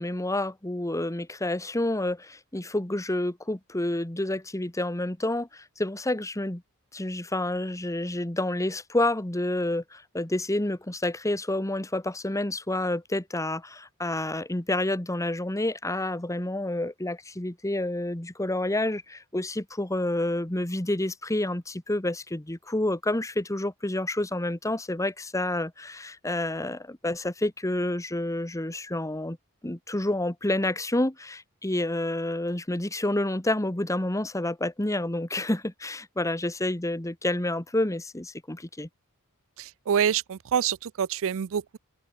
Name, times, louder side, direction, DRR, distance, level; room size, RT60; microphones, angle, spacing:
voice 1, 0.0-6.6 6.9-29.4 29.6-38.9, left 1 dB, 15° left, 1.4 m, -29 dB
voice 2, 39.6-41.8, right 8 dB, 65° right, 0.4 m, -26 dB
open air
head